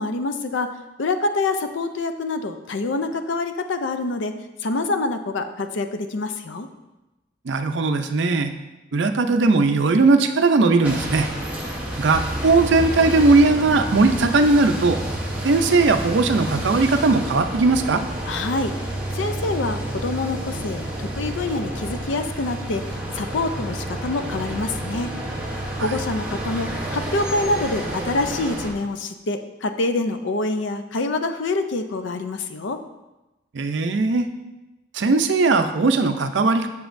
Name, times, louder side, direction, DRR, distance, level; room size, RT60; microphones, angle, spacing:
voice 1, 0.0-6.7 18.2-25.1 25.8-32.8, left 2 dB, 75° left, 8 dB, 0.5 m, -26 dB
voice 2, 7.5-8.5 8.9-11.3 12.0-15.0 15.4-18.0 25.8-25.9 33.5-34.3 34.9-36.7, right 3 dB, 70° right, 8 dB, 0.5 m, -18 dB
sound 1, 10.8-28.7, right 1 dB, 10° right, 0.9 m, -29 dB
7.1 x 6.9 x 2.6 m, 1.0 s
head